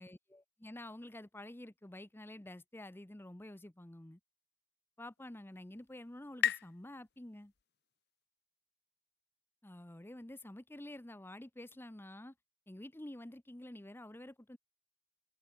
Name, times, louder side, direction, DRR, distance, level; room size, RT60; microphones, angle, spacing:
voice 1, 0.0-4.2 5.0-7.5 9.6-12.3 12.7-14.6, left 1 dB, 10° left, 0.8 m, -49 dB
sound 1, 5.0-8.3, left 11 dB, 60° left, 0.9 m, -40 dB
head